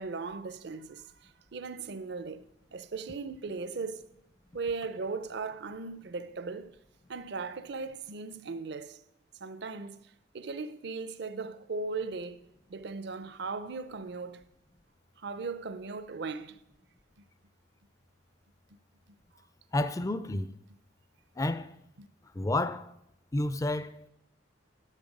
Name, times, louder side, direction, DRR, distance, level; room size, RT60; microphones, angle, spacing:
voice 1, 0.0-4.1 4.5-6.8 7.1-9.0 9.4-10.0 10.3-12.4 12.7-14.4 15.2-16.6 22.0-22.1, right 4 dB, 60° right, 0.6 m, -38 dB
voice 2, 19.7-20.6 21.4-21.7 22.4-22.9 23.3-24.1, left 2 dB, 15° left, 0.4 m, -30 dB
10.5 x 7.8 x 5.2 m
head